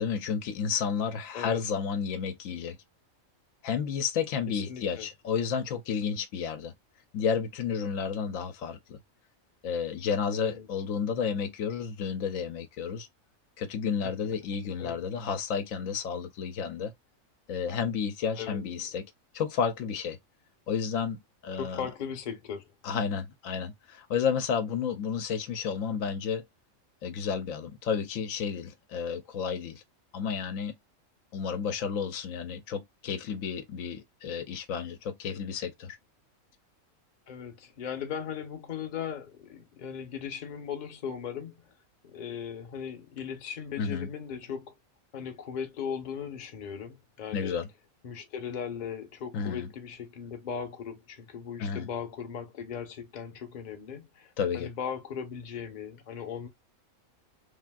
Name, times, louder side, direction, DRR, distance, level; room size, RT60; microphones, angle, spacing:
voice 1, 0.0-2.8 3.6-6.7 7.1-9.0 9.6-13.1 13.6-16.9 17.5-19.0 19.3-20.2 20.7-21.9 22.8-26.4 27.0-29.8 30.1-30.7 31.3-36.0 43.8-44.1 47.3-47.7 49.3-49.7 51.6-51.9 54.4-54.7, left 6 dB, 80° left, 1.0 m, -31 dB
voice 2, 4.5-5.1 10.5-10.7 14.0-14.2 14.8-15.0 18.4-18.6 21.6-22.7 37.3-41.7 42.0-44.7 45.1-47.6 48.0-56.5, left 7 dB, 40° left, 0.8 m, -38 dB
3.4 x 2.5 x 2.2 m
omnidirectional pair, 1.4 m